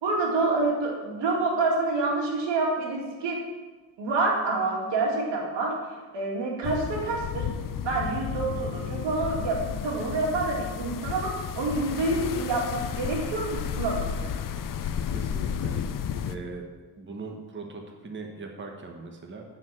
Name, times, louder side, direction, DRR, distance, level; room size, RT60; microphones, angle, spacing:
voice 1, 0.0-3.4 4.0-5.7 6.1-7.5 7.8-14.0, right 3 dB, 90° right, -2 dB, 2.7 m, -27 dB
sound 1, 6.6-16.4, left 8 dB, 50° left, 0.6 m, -32 dB
voice 2, 15.1-16.6 17.0-19.4, right 3 dB, 25° right, 2 dB, 1.2 m, -40 dB
10.5 x 4.7 x 7.7 m, 1.3 s
cardioid pair, 135°, 42 cm